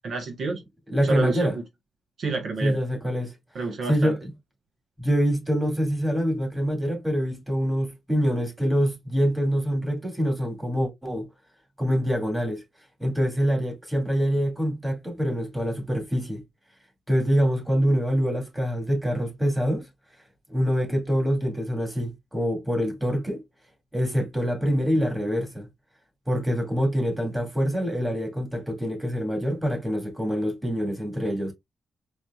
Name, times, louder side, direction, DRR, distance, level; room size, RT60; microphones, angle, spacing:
voice 1, 0.0-0.6 1.0-1.6 2.2-2.8 3.5-4.1, right 3 dB, 65° right, 0.9 m, -29 dB
voice 2, 0.9-1.5 2.6-3.3 3.9-4.3 5.0-11.3 11.8-12.6 13.0-16.4 17.1-19.9 20.5-23.4 23.9-25.7 26.3-31.5, equal, 10° right, 2.0 m, -25 dB
4.4 x 3.1 x 2.3 m
cardioid pair, 90°, 0 cm